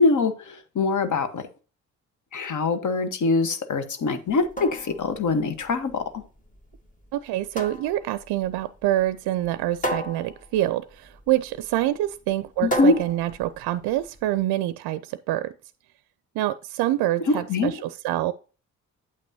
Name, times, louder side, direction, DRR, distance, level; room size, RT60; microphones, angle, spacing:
voice 1, 0.0-1.5 2.3-6.2 12.6-13.0 17.3-17.7, left 3 dB, 45° left, 1.2 m, -23 dB
sound 1, 4.3-14.3, equal, 20° left, 1.7 m, -35 dB
voice 2, 7.1-15.5 16.4-18.3, right 14 dB, 60° right, 0.6 m, -26 dB
8.7 x 8.1 x 2.7 m
hypercardioid pair, 45°, 42 cm